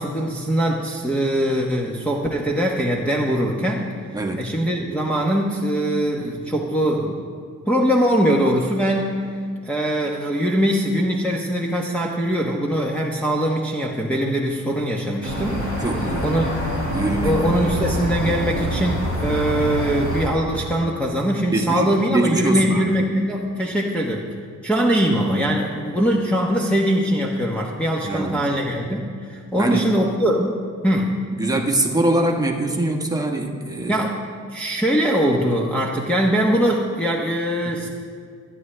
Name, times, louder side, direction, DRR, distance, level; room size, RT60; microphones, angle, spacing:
voice 1, 0.0-3.9 4.4-7.2 7.7-9.2 9.6-15.7 16.2-16.5 17.2-24.2 24.6-31.1 33.9-34.1 34.5-37.9, equal, 5° left, -4 dB, 1.1 m, -22 dB
voice 2, 4.1-4.5 15.8-16.3 16.9-17.4 21.5-23.1 28.0-28.5 29.6-29.8 31.3-34.0 37.6-37.7, right 2 dB, 10° right, 1 dB, 1.4 m, -23 dB
sound 1, 15.2-20.3, equal, 85° left, 4.2 m, -25 dB
22.5 x 9.9 x 3.4 m, 2.1 s
cardioid pair, 120°, 29 cm